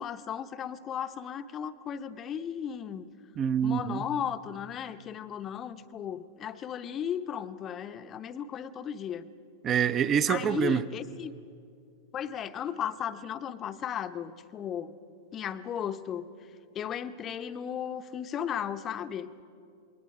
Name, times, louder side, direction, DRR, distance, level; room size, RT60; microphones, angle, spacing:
voice 1, 0.0-3.1 3.6-9.3 10.3-11.4 12.1-15.0 15.3-16.3 16.7-19.3, left 8 dB, 30° left, 11 dB, 0.8 m, -35 dB
voice 2, 3.4-4.0 9.6-10.8, right 8 dB, 30° right, 15 dB, 0.7 m, -26 dB
27.5 x 21.5 x 5.0 m, 2.5 s
figure-of-eight pair, 90°, 0 cm